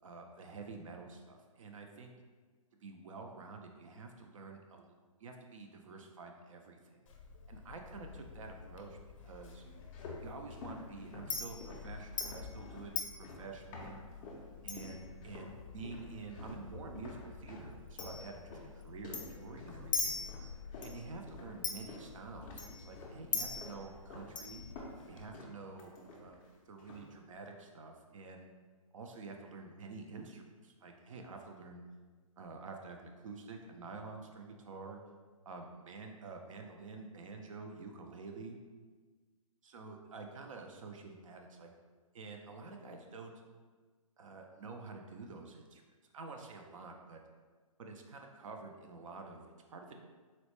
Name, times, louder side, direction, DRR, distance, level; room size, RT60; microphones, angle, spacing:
voice 1, 0.0-2.1 2.8-4.9 5.2-7.0 7.5-9.0 9.2-9.6 10.2-14.0 14.6-20.3 20.8-24.7 25.1-26.4 26.7-28.5 28.9-31.8 32.4-35.0 35.5-38.6 39.6-41.7 42.1-43.3 44.2-45.8 46.1-47.2 47.8-49.9, right 3 dB, 65° right, 3 dB, 0.4 m, -48 dB
Chink clink, 7.1-25.3, left 5 dB, 65° left, 0.6 m, -44 dB
sound 1, 9.6-14.5 14.8-15.5 15.8-22.1 22.4-23.2 23.6-24.3 24.6-26.5 26.8-27.2, left 2 dB, 15° left, 0.3 m, -50 dB
3.9 x 2.1 x 3.0 m, 1.4 s
hypercardioid pair, 150°, 18 cm